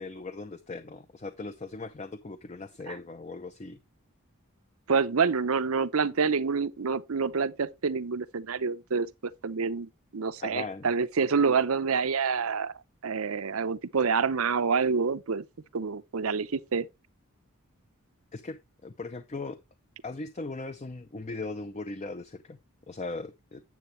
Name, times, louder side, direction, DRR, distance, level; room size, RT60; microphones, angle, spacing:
voice 1, 0.0-3.8 10.4-10.9 18.3-19.6 20.0-22.6 22.9-23.6, left 3 dB, 30° left, 0.6 m, -38 dB
voice 2, 4.9-9.1 9.4-12.7 13.0-15.5 15.7-16.9, right 5 dB, 75° right, 0.7 m, -27 dB
9.3 x 7.8 x 3.2 m
head